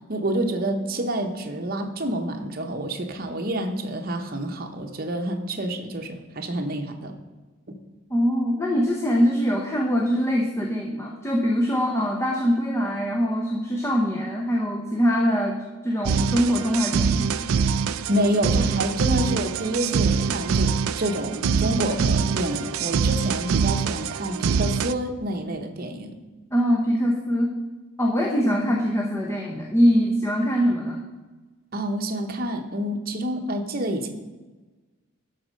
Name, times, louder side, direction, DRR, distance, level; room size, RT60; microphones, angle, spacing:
voice 1, 0.1-7.1 18.1-26.2 28.4-28.6 31.7-34.1, right 1 dB, 45° right, 4 dB, 0.9 m, -28 dB
voice 2, 8.1-17.3 26.5-27.5 28.0-31.0, equal, 15° left, -1 dB, 0.8 m, -23 dB
sound 1, 16.0-24.9, right 6 dB, 80° right, 0.4 m, -24 dB
11.5 x 4.2 x 6.3 m, 1.2 s
head